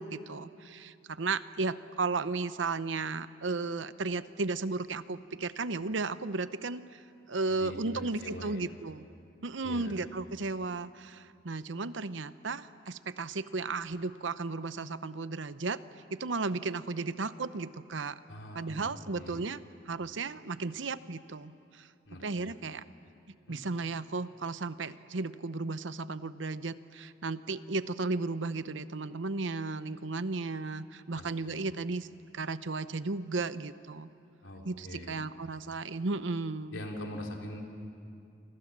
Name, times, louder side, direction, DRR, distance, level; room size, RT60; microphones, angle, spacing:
voice 1, 0.0-7.0 7.3-9.1 9.4-15.8 16.1-18.2 18.5-19.6 19.9-21.9 22.2-22.8 23.5-32.1 32.3-34.1 34.6-36.8, right 3 dB, 75° right, 14 dB, 0.8 m, -34 dB
voice 2, 7.5-8.7 9.6-9.9 18.3-18.9 19.1-19.5 22.1-22.5 23.5-23.6 31.1-31.5 34.4-35.2 36.7-37.6, left 1 dB, 80° left, 1 dB, 3.8 m, -43 dB
29.0 x 26.0 x 7.4 m, 2.5 s
head